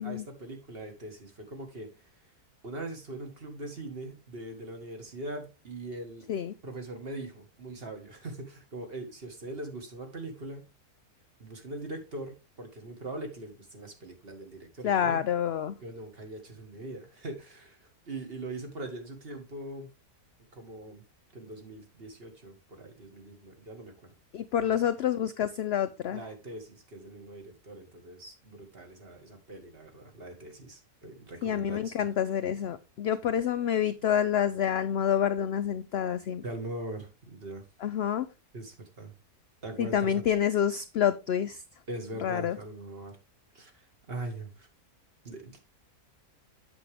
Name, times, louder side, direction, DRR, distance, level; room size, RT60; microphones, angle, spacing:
voice 1, 0.0-2.1 2.6-6.3 6.6-10.7 11.4-15.2 15.8-19.9 20.5-21.0 21.3-23.9 24.6-24.8 26.1-32.1 36.4-37.6 38.5-39.1 39.6-40.2 41.9-43.2 43.5-44.7 45.2-45.6, right 2 dB, 40° right, 1.8 m, -41 dB
voice 2, 14.8-15.7 24.3-26.2 31.4-36.4 37.8-38.2 39.8-41.6 42.2-42.5, left 9 dB, 75° left, 0.5 m, -28 dB
8.2 x 6.8 x 3.3 m
omnidirectional pair, 1.6 m